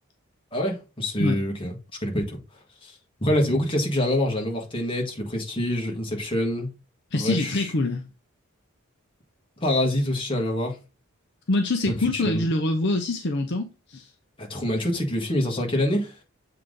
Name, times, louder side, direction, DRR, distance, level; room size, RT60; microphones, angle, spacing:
voice 1, 0.5-1.8 2.0-2.4 2.8-6.7 7.1-7.7 9.6-10.8 11.9-12.5 14.4-16.1, left 1 dB, 25° left, 1.7 m, -26 dB
voice 2, 7.1-8.0 11.5-14.1, left 2 dB, 55° left, 0.7 m, -25 dB
7.4 x 3.9 x 3.8 m
head